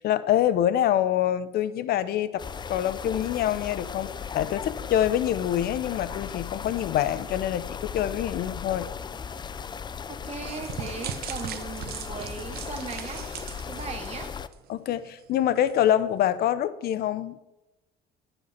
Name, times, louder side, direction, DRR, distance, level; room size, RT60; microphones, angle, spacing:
voice 1, 0.0-8.9 14.7-17.4, left 11 dB, 65° left, 0.7 m, -25 dB
sound 1, 2.4-14.5, left 6 dB, 25° left, 0.5 m, -37 dB
voice 2, 10.1-13.2 13.7-14.3, right 5 dB, 40° right, 2.1 m, -38 dB
sound 2, 10.5-14.7 15.1-15.2 15.7-15.8, right 10 dB, 65° right, 0.8 m, -39 dB
11.0 x 8.0 x 5.8 m
cardioid pair, 110°, 17 cm